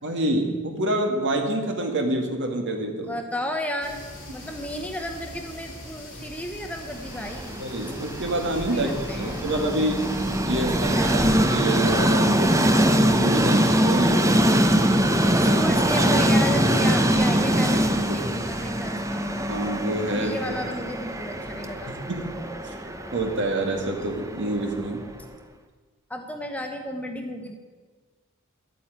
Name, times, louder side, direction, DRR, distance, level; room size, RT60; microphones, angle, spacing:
voice 1, 0.0-3.1 7.6-10.1 10.4-12.8 13.0-14.6 18.1-18.4 19.5-20.6 21.9-22.3 22.6-22.7 23.1-25.0, right 1 dB, 55° right, 3 dB, 2.2 m, -27 dB
voice 2, 3.1-4.0 4.3-7.6 8.7-9.6 10.5-11.5 15.3-19.3 20.1-21.9 26.1-27.5, equal, 5° left, 4 dB, 1.0 m, -33 dB
sound 1, 3.8-10.4, left 1 dB, 35° left, 4.5 m, -42 dB
Train, 7.0-25.1, equal, 15° right, 0.8 m, -23 dB
11.0 x 8.8 x 9.2 m, 1.4 s
head